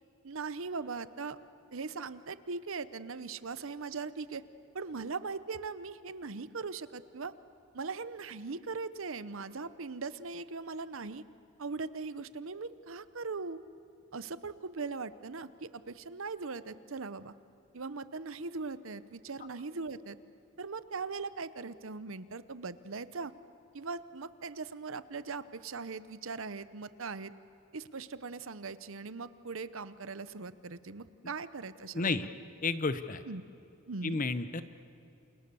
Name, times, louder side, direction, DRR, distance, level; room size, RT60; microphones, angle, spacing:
voice 1, 0.2-1.4 1.7-4.4 4.7-7.3 7.7-11.2 11.6-13.6 14.1-17.3 17.7-20.2 20.6-23.3 23.7-27.3 27.7-32.3 33.3-33.4 33.9-34.2, right 4 dB, 75° right, 14 dB, 0.9 m, -40 dB
voice 2, 31.9-32.3 32.6-33.2 34.0-34.6, left 3 dB, 40° left, 12 dB, 0.9 m, -31 dB
29.0 x 28.0 x 7.0 m, 2.7 s
head